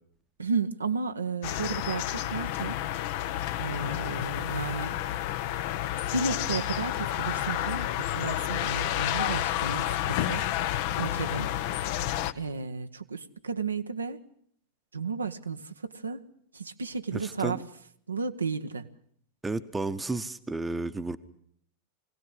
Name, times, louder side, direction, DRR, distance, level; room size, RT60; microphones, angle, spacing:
voice 1, 0.4-2.8 3.6-5.0 6.1-10.5 11.0-11.5 12.3-14.2 14.9-16.3 16.5-17.7 18.1-18.9, right 4 dB, 75° right, 7 dB, 1.1 m, -33 dB
sound 1, 1.4-12.3, left 13 dB, 50° left, 0.9 m, -30 dB
voice 2, 17.1-17.6 19.4-21.2, right 3 dB, 10° right, 11 dB, 1.1 m, -32 dB
23.0 x 17.5 x 9.8 m, 0.66 s
figure-of-eight pair, 90°, 0 cm